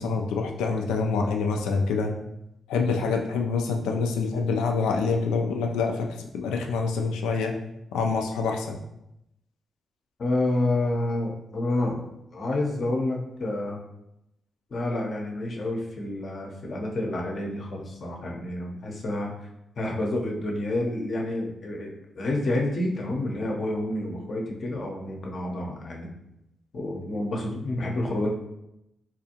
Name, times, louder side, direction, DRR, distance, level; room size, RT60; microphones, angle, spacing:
voice 1, 0.0-2.1 2.7-6.1 6.3-7.5 7.9-8.8, left 4 dB, 90° left, 2 dB, 0.4 m, -26 dB
voice 2, 10.2-12.0 12.3-13.8 14.7-19.3 19.8-26.1 26.7-28.4, left 1 dB, 60° left, 0 dB, 0.7 m, -29 dB
4.0 x 2.5 x 2.8 m, 0.85 s
supercardioid pair, 45°, 0 cm